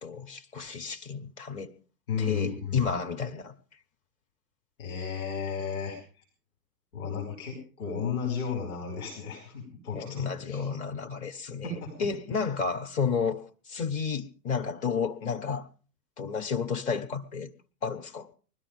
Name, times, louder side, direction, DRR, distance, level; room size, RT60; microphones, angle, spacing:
voice 1, 0.0-1.7 2.2-3.5 9.9-15.7 16.2-17.5 17.8-18.3, left 5 dB, 15° left, 0.7 m, -31 dB
voice 2, 2.1-3.2 4.8-6.0 6.9-10.6 11.6-12.1, left 6 dB, 60° left, 5.3 m, -34 dB
20.5 x 12.5 x 5.3 m
figure-of-eight pair, 105°, 49 cm